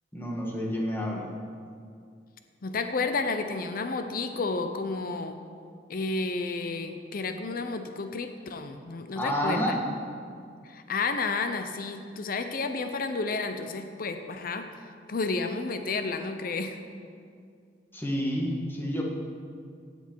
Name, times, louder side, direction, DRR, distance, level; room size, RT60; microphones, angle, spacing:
voice 1, 0.1-1.3 9.1-9.8 17.9-19.0, equal, 10° left, -1 dB, 1.6 m, -29 dB
voice 2, 2.6-5.4 5.9-9.8 10.6-16.8, left 3 dB, 55° left, 8 dB, 0.6 m, -31 dB
16.5 x 8.1 x 4.6 m, 2.2 s
head